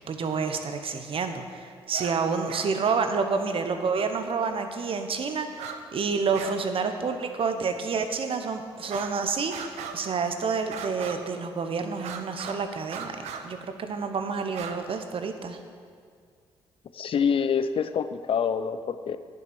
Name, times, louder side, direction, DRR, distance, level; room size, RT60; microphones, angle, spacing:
voice 1, 0.1-15.6, right 5 dB, 55° right, 7 dB, 1.0 m, -29 dB
sound 1, 1.9-2.2 2.5-2.7 4.3-4.4 5.5-5.8 6.1-6.6 6.9-7.0 7.7-7.8 8.8-9.2 9.5-10.2 10.7-11.4 11.9-12.6 12.9-13.4 14.4-14.8, right 7 dB, 75° right, 0.7 m, -38 dB
voice 2, 16.9-19.2, left 7 dB, 55° left, 12 dB, 0.6 m, -26 dB
10.0 x 6.5 x 6.1 m, 2.1 s
supercardioid pair, 55°, 11 cm